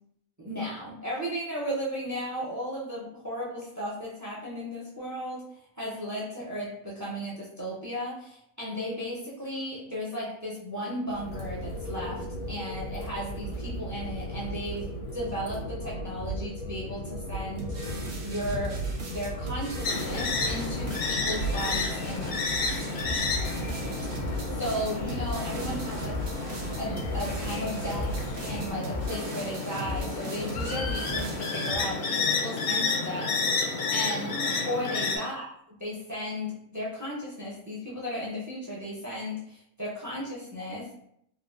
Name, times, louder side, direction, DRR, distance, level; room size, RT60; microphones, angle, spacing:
voice 1, 0.4-5.4 5.8-18.8 19.1-22.3 24.6-26.2 26.8-28.2 28.5-35.5 35.8-40.9, equal, 25° right, -5 dB, 0.3 m, -35 dB
Train Tunnel, 11.1-28.7, right 1 dB, 80° left, 1.1 m, -36 dB
sound 1, 17.6-31.8, left 1 dB, 60° right, 0.8 m, -37 dB
sound 2, 19.8-35.2, left 4 dB, 65° left, 0.6 m, -31 dB
3.8 x 2.2 x 2.4 m, 0.72 s
omnidirectional pair, 1.4 m